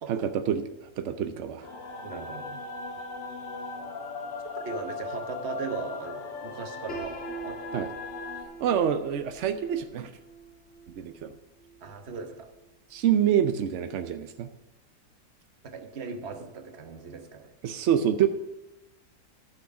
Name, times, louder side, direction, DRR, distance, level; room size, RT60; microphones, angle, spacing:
voice 1, 0.1-1.7 7.7-7.9 8.6-10.1 11.0-11.3 12.9-14.5 17.6-18.3, right 9 dB, 80° right, 9 dB, 0.6 m, -26 dB
sound 1, 1.6-8.4, left 4 dB, 75° left, 2.1 m, -38 dB
voice 2, 2.0-2.6 4.5-7.2 7.4-7.9 11.8-12.5 15.6-17.5, right 5 dB, 45° right, 6 dB, 1.0 m, -38 dB
Piano, 6.9-12.7, right 3 dB, 40° left, 2.1 m, -44 dB
12.0 x 6.3 x 5.7 m, 0.98 s
omnidirectional pair, 1.9 m